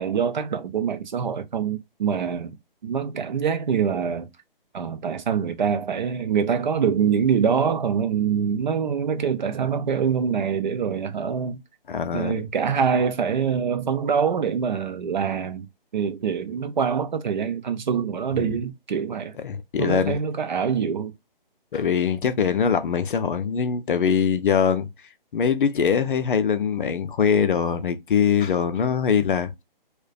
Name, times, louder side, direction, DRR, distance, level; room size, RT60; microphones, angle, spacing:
voice 1, 0.0-2.6 2.8-4.3 4.7-11.6 12.1-15.7 15.9-19.3 19.8-21.1, right 7 dB, 50° right, 0.5 m, -24 dB
voice 2, 11.9-12.4 18.4-18.5 19.4-20.2 21.7-24.9 25.3-29.6, left 7 dB, 60° left, 0.5 m, -22 dB
2.4 x 2.1 x 2.3 m
hypercardioid pair, 155°, 29 cm